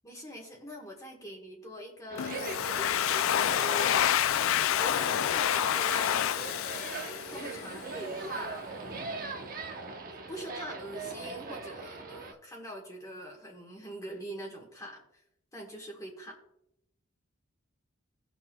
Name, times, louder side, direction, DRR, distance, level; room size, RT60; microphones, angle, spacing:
voice 1, 0.0-4.2 4.5-6.3 7.3-8.8 10.1-15.2 15.5-16.4, right 1 dB, 15° left, -2 dB, 1.3 m, -44 dB
sound 1, 2.1-12.3, right 3 dB, 45° right, 1.0 m, -40 dB
Domestic sounds home sounds, 2.2-7.8, left 10 dB, 70° left, 0.3 m, -28 dB
18.0 x 6.0 x 2.2 m, 0.81 s
head